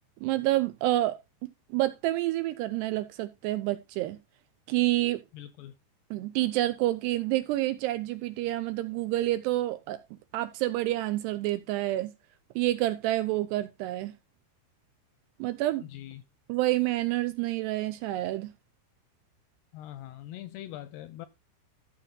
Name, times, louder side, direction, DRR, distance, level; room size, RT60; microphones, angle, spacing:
voice 1, 0.2-1.1 1.4-4.2 4.7-5.2 6.1-10.0 10.3-12.1 12.6-14.1 15.4-15.8 16.5-18.5, right 16 dB, 80° right, 2.5 m, -28 dB
voice 2, 5.3-5.7 15.9-16.2 19.7-21.3, left 13 dB, 80° left, 2.4 m, -42 dB
13.5 x 5.6 x 3.8 m
omnidirectional pair, 5.3 m